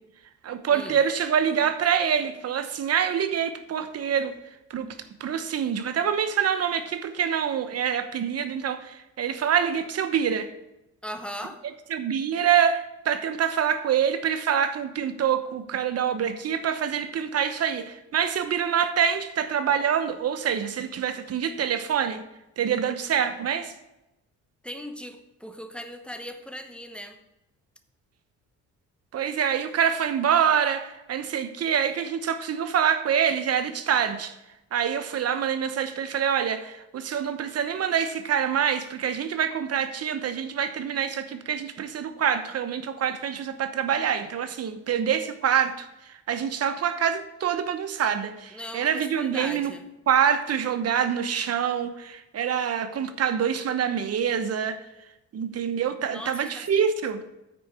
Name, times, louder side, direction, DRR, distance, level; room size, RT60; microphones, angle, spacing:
voice 1, 0.4-4.4 4.7-4.9 5.2-10.5 11.9-22.2 22.6-23.7 29.1-34.3 34.7-49.7 50.1-54.8 55.3-57.2, right 8 dB, 55° right, 10 dB, 1.0 m, -26 dB
voice 2, 11.0-11.6 24.6-27.2 48.5-49.8 56.1-56.7, equal, 5° left, 7 dB, 1.1 m, -38 dB
9.3 x 4.6 x 7.0 m, 0.92 s
cardioid pair, 90°, 30 cm